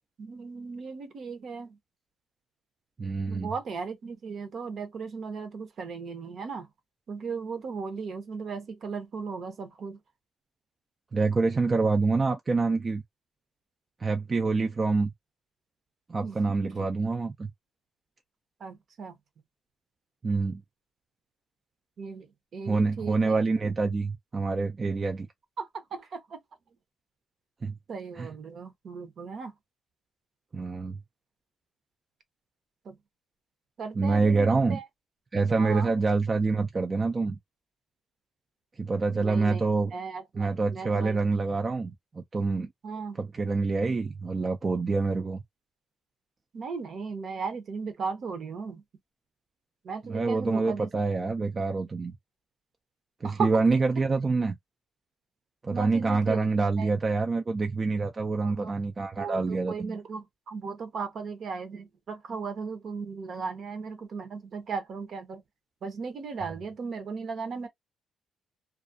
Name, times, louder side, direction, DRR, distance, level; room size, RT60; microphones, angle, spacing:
voice 1, 0.2-1.8 3.3-6.7 7.1-10.0 16.2-16.4 16.6-16.9 18.6-19.2 22.0-22.3 22.5-23.5 25.6-26.4 27.9-29.5 32.8-32.9 33.8-34.8 35.6-35.9 39.1-39.6 39.9-41.2 42.8-43.2 46.5-48.8 49.8-50.9 53.2-53.8 55.7-56.5 56.8-56.9 58.4-58.7 59.2-65.4 65.8-67.7, right 5 dB, 55° right, 0.8 m, -36 dB
voice 2, 3.0-3.5 11.1-13.0 14.0-15.1 16.1-17.5 20.2-20.6 22.7-25.3 27.6-27.7 28.1-28.3 30.5-31.0 34.0-34.8 35.3-37.4 38.8-39.9 40.3-42.7 43.2-45.4 50.0-52.1 53.2-54.6 55.6-60.0, right 3 dB, 35° right, 0.4 m, -26 dB
2.4 x 2.1 x 2.6 m
cardioid pair, 90°, 0 cm